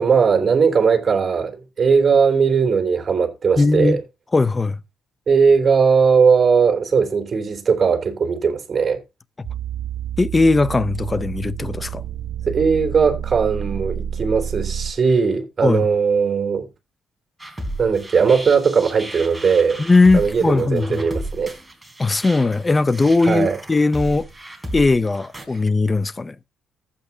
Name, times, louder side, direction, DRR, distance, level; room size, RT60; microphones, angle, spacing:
voice 1, 0.0-4.0 5.3-9.0 12.5-16.7 17.8-19.8 20.1-21.5 23.2-23.6, right 5 dB, 40° right, 3.2 m, -18 dB
voice 2, 3.6-4.0 4.3-4.8 10.2-12.0 15.6-15.9 19.8-21.0 22.0-24.3 24.7-26.3, left 3 dB, 25° left, 0.7 m, -18 dB
sound 1, 9.4-14.9, right 9 dB, 70° right, 0.7 m, -29 dB
sound 2, 17.4-25.4, right 1 dB, 10° right, 3.8 m, -34 dB
15.0 x 8.5 x 2.8 m
cardioid pair, 90°, 0 cm